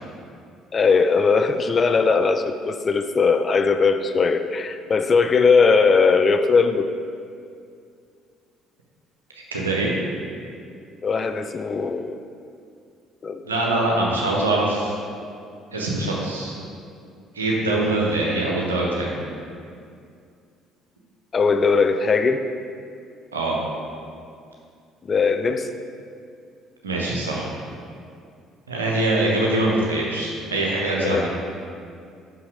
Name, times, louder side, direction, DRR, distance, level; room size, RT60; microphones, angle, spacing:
voice 1, 0.7-6.9 11.0-12.2 13.2-13.4 21.3-22.4 25.1-25.7 31.0-31.3, left 4 dB, 35° left, 9 dB, 0.3 m, -19 dB
voice 2, 9.3-9.9 13.5-15.0 15.7-16.5 17.3-19.1 23.3-23.6 26.8-27.5 28.7-31.3, right 2 dB, 80° right, -3 dB, 1.0 m, -23 dB
5.7 x 5.5 x 4.9 m, 2.3 s
figure-of-eight pair, 50°, 0 cm